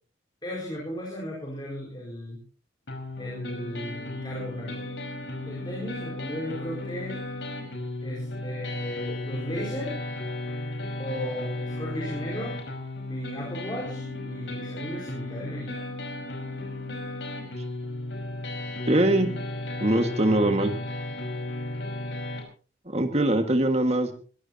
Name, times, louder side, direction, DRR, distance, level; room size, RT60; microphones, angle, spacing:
voice 1, 0.4-2.4 3.2-4.8 5.4-7.2 8.0-10.0 11.0-12.6 13.1-15.8 16.6-16.7, equal, 25° left, -3 dB, 4.5 m, -36 dB
sound 1, 2.9-22.4, left 2 dB, 70° left, 5.0 m, -35 dB
voice 2, 18.9-19.3 19.8-20.7 22.9-24.1, right 1 dB, 35° right, 6 dB, 1.9 m, -22 dB
21.5 x 16.0 x 2.9 m, 0.40 s
head